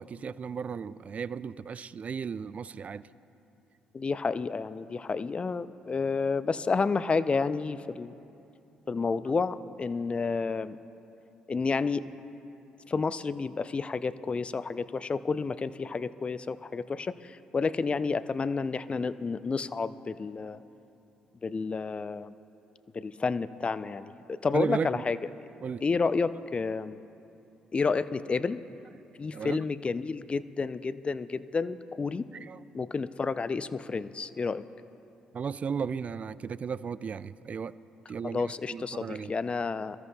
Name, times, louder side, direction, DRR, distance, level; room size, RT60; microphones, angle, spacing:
voice 1, 0.0-3.1 24.5-25.1 25.6-25.9 29.3-29.6 32.4-32.6 35.3-37.7 38.1-39.3, right 6 dB, 40° right, 0.3 m, -35 dB
voice 2, 3.9-8.2 8.9-10.8 11.5-12.1 12.9-20.6 21.4-22.3 22.9-25.2 25.8-27.0 27.7-28.6 29.2-32.3 32.7-34.6 38.2-40.0, left 4 dB, 30° left, 0.4 m, -30 dB
24.0 x 13.5 x 2.3 m
hypercardioid pair, 45°, 4 cm